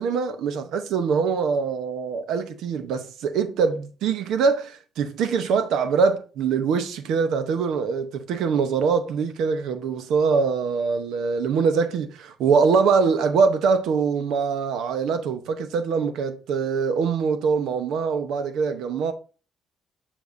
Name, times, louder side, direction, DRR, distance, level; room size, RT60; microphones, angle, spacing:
voice 1, 0.0-19.1, right 5 dB, 85° right, 0.8 m, -23 dB
7.1 x 5.3 x 2.7 m
cardioid pair, 90°, 0 cm